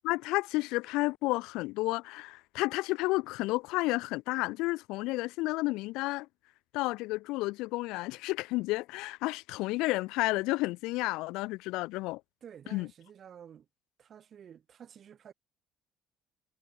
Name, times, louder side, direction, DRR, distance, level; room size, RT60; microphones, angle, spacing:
voice 1, 0.0-6.3 6.7-12.2 12.7-12.9, left 21 dB, 85° left, 3.3 m, -31 dB
voice 2, 12.4-13.7 14.0-15.3, right 8 dB, 40° right, 7.3 m, -51 dB
cardioid pair, 130°, 0 cm